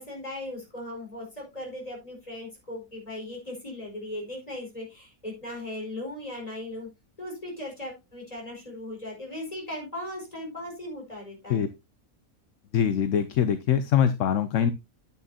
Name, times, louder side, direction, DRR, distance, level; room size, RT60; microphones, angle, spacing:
voice 1, 0.0-6.9 7.2-11.7, left 1 dB, 25° left, 0 dB, 5.1 m, -38 dB
voice 2, 12.7-14.7, left 8 dB, 65° left, 11 dB, 1.0 m, -23 dB
10.0 x 8.6 x 2.8 m, 0.23 s
omnidirectional pair, 1.5 m